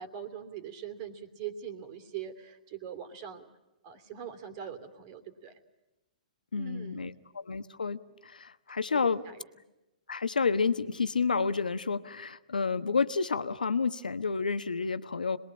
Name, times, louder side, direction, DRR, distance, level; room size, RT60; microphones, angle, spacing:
voice 1, 0.0-3.5 3.8-5.6 6.6-7.2 8.9-9.5, right 8 dB, 45° right, 8 dB, 2.9 m, -42 dB
voice 2, 6.5-9.2 10.1-15.4, left 5 dB, 90° left, 12 dB, 1.1 m, -30 dB
27.0 x 21.0 x 8.7 m, 1.0 s
hypercardioid pair, 125°, 4 cm